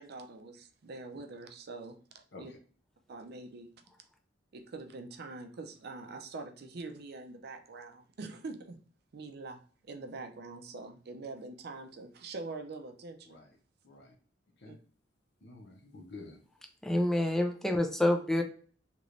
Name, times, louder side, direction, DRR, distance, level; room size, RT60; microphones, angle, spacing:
voice 1, 0.0-2.5 3.1-3.7 4.5-8.8 9.1-13.4 14.6-14.8, right 3 dB, 60° right, 0.5 m, -44 dB
voice 2, 13.8-14.2 14.6-14.8 15.4-16.4, left 3 dB, 65° left, 0.7 m, -49 dB
voice 3, 16.8-18.4, left 1 dB, ahead, 0.4 m, -27 dB
3.1 x 2.9 x 2.5 m
head